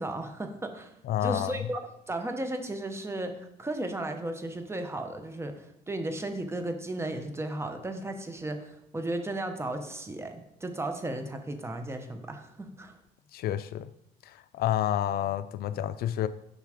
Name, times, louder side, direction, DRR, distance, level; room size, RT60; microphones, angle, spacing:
voice 1, 0.0-0.9 1.2-1.8 2.1-12.9, right 1 dB, 15° right, 7 dB, 1.0 m, -35 dB
voice 2, 1.0-1.7 13.3-13.9 14.2-16.3, left 11 dB, 65° left, 14 dB, 0.4 m, -29 dB
7.2 x 5.5 x 5.0 m, 0.81 s
cardioid pair, 110°, 17 cm